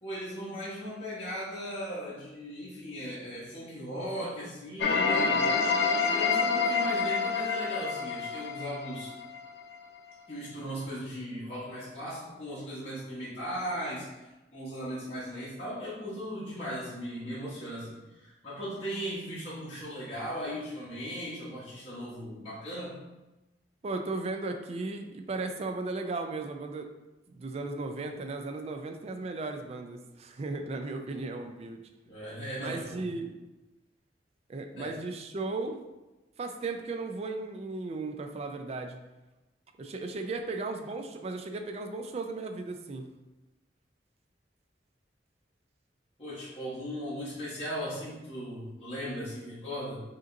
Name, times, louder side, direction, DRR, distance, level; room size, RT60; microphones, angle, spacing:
voice 1, 0.0-5.4 6.0-9.1 10.3-22.9 32.0-33.2 34.7-34.9 46.2-50.0, equal, 35° left, -10 dB, 1.1 m, -37 dB
sound 1, 4.8-9.6, left 5 dB, 70° left, 0.4 m, -28 dB
voice 2, 23.8-26.9 27.3-31.8 32.6-33.3 34.5-35.8 36.4-39.0 39.8-43.1, right 3 dB, 35° right, 5 dB, 0.3 m, -36 dB
4.9 x 2.9 x 2.6 m, 1.1 s
head